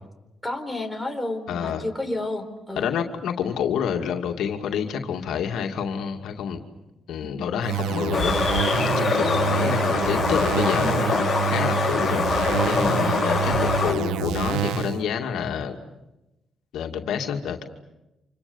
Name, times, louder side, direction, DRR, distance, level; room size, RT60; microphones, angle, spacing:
voice 1, 0.4-2.9 7.2-7.6 10.8-11.0, left 2 dB, ahead, 3 dB, 4.5 m, -31 dB
voice 2, 1.5-1.8 2.8-6.6 7.1-8.7 9.0-15.8 16.7-17.6, left 7 dB, 75° left, 3 dB, 2.4 m, -28 dB
sound 1, 7.6-15.0, right 9 dB, 90° right, 1.5 m, -27 dB
sound 2, 8.1-13.9, left 5 dB, 35° left, 5.6 m, -24 dB
29.5 x 27.0 x 7.2 m, 0.96 s
cardioid pair, 90°, 0 cm